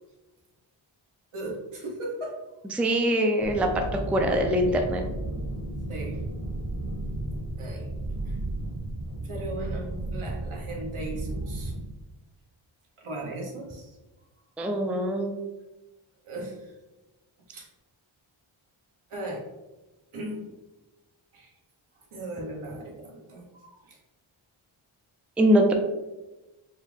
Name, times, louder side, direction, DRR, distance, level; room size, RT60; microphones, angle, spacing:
voice 1, 1.3-2.4 5.9-6.2 7.6-7.9 8.2-8.4 9.2-11.7 13.0-14.0 16.2-16.7 17.5-17.7 19.1-19.5 20.1-20.5 21.3-21.5 22.1-24.0, right 1 dB, 80° right, -2 dB, 1.3 m, -37 dB
voice 2, 2.7-5.0 14.6-15.3 25.4-25.7, equal, 5° right, 3 dB, 0.3 m, -23 dB
sound 1, 3.4-11.8, right 2 dB, 40° right, 1.0 m, -33 dB
4.5 x 2.4 x 3.4 m, 1.1 s
wide cardioid pair, 100°, 49 cm